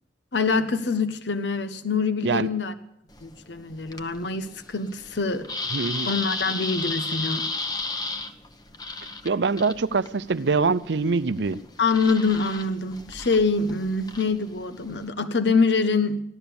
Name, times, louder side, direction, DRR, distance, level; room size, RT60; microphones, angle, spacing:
voice 1, 0.3-2.7 3.2-5.5 6.1-7.5 11.8-16.2, left 4 dB, 85° left, 1.0 m, -25 dB
sound 1, 3.1-15.1, left 3 dB, 25° left, 1.0 m, -35 dB
voice 2, 5.7-6.1 9.2-11.6, right 4 dB, 80° right, 0.6 m, -24 dB
16.0 x 12.0 x 7.0 m
head